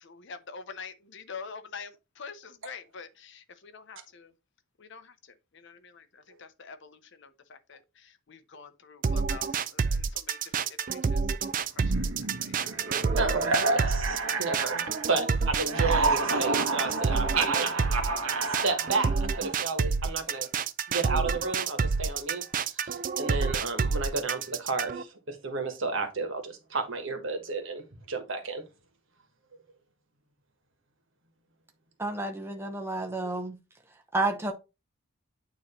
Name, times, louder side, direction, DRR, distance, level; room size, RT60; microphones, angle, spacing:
voice 1, 0.0-4.3 4.8-5.1 5.5-10.4 10.8-11.5 11.9-12.1 12.4-12.8, left 5 dB, 55° left, 0.7 m, -46 dB
sound 1, 9.0-25.0, right 5 dB, 40° right, 0.4 m, -28 dB
sound 2, 11.8-15.3 15.6-19.6, right 3 dB, 75° right, 1.1 m, -30 dB
voice 2, 13.2-17.7 18.6-19.1 19.4-20.5 20.9-28.6, right 3 dB, 60° right, 1.4 m, -32 dB
voice 3, 32.0-33.6 34.1-34.5, right 2 dB, 10° right, 0.8 m, -30 dB
9.0 x 3.0 x 4.3 m
head